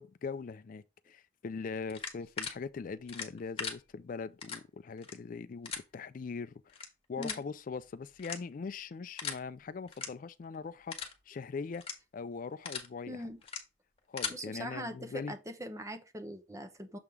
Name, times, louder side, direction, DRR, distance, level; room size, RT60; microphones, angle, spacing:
voice 1, 0.0-6.8 7.1-11.9 12.1-13.3 14.1-15.3, left 5 dB, 50° left, 0.4 m, -41 dB
sound 1, 1.9-2.5 3.1-3.7 4.4-4.6 5.0-5.1 5.6-5.8 6.7-6.9 7.2-7.4 8.2-8.6 9.2-9.4 9.9-10.1 10.4-10.6 10.9-11.1 11.7-11.9 12.4-12.9 13.4-13.6 14.0-14.3, left 6 dB, 30° left, 1.5 m, -38 dB
voice 2, 13.1-13.4 14.3-17.0, equal, 15° right, 0.9 m, -42 dB
6.9 x 3.7 x 4.7 m
head